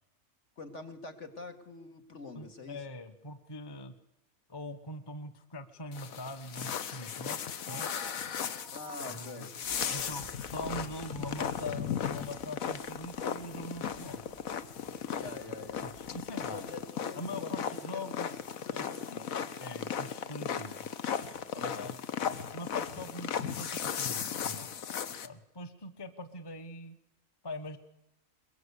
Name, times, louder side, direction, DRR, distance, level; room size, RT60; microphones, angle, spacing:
voice 1, 0.6-2.8 8.7-9.5 9.9-10.2 10.8-10.9 15.1-15.8 16.5-18.2 18.6-19.4 21.5-21.9, left 3 dB, 55° left, 6 dB, 2.5 m, -46 dB
voice 2, 2.3-3.9 4.5-8.0 9.1-9.4 9.9-14.2 15.2-15.4 15.8-16.6 17.1-18.3 18.7-18.9 19.6-20.9 21.6-21.9 22.5-24.7 25.2-27.0 27.4-27.8, left 1 dB, 20° left, 9 dB, 1.1 m, -42 dB
sound 1, 5.9-25.3, left 8 dB, 75° left, 1.5 m, -36 dB
sound 2, 7.6-9.4 10.7-11.8, right 5 dB, 20° right, 0.8 m, -54 dB
sound 3, 9.6-16.8, equal, 40° left, 3.1 m, -57 dB
22.5 x 22.5 x 8.4 m, 0.89 s
omnidirectional pair, 1.5 m